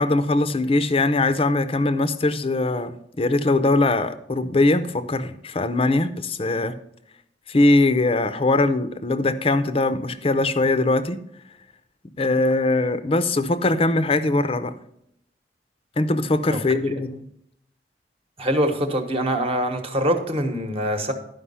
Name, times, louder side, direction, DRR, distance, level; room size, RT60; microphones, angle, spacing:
voice 1, 0.0-6.7 7.5-11.2 12.2-14.7 16.0-17.2, left 2 dB, 30° left, 12 dB, 0.6 m, -21 dB
voice 2, 18.4-21.1, equal, 35° right, 5 dB, 1.1 m, -24 dB
11.5 x 5.3 x 5.5 m, 0.74 s
head